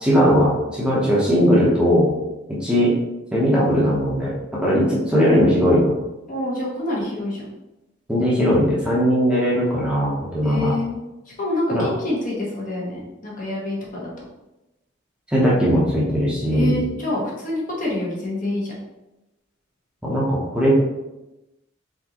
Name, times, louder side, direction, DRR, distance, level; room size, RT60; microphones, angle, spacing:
voice 1, 0.0-2.1 2.6-2.9 3.3-5.9 8.1-10.7 11.7-11.9 15.3-16.7 20.0-20.8, equal, 5° right, -7 dB, 0.9 m, -19 dB
voice 2, 6.3-7.4 10.4-11.0 11.4-14.1 16.5-18.7, left 1 dB, 40° left, -4 dB, 1.2 m, -26 dB
4.3 x 3.9 x 2.9 m, 0.99 s
head